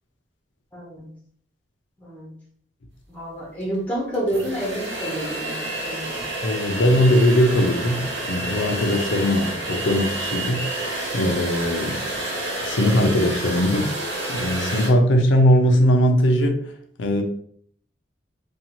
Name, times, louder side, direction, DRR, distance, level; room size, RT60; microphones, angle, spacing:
voice 1, 0.7-1.1 2.0-2.4 3.1-6.3, right 1 dB, 10° left, -4 dB, 0.8 m, -29 dB
sound 1, 3.6-3.7 4.1-14.9, right 2 dB, 80° right, 0.8 m, -29 dB
sound 2, 5.9-6.0 6.2-6.4 6.7-6.8 7.2-8.1 8.5-8.6 8.9-9.1 9.4-9.5 9.9-10.0 10.3-10.5 10.8-10.9 11.3-12.2 12.6-12.7 13.0-13.2 13.5-13.7 14.1-14.6, right 1 dB, 15° right, 0.4 m, -43 dB
voice 2, 6.4-10.7 11.1-12.1 12.6-13.9 14.3-16.6 17.0-17.2, equal, 90° left, 4 dB, 0.5 m, -20 dB
2.6 x 2.3 x 2.9 m, 0.62 s
head